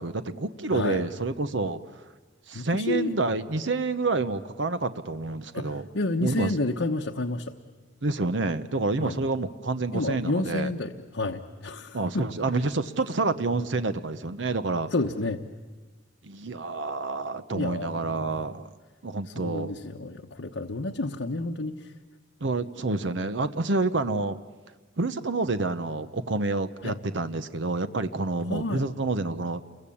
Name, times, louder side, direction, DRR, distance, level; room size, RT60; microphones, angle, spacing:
voice 1, 0.0-2.0 2.5-5.9 6.2-6.5 8.0-10.7 11.9-14.9 16.2-18.7 19.0-19.7 22.4-24.4 25.0-29.6, right 3 dB, 70° right, 11 dB, 0.9 m, -28 dB
voice 2, 0.7-1.1 2.5-3.1 5.5-7.5 9.0-9.2 9.9-12.3 14.9-15.4 17.5-18.5 19.3-21.9 26.8-27.0 28.5-28.9, left 2 dB, 85° left, 2 dB, 1.1 m, -30 dB
29.5 x 22.5 x 8.7 m, 1.3 s
head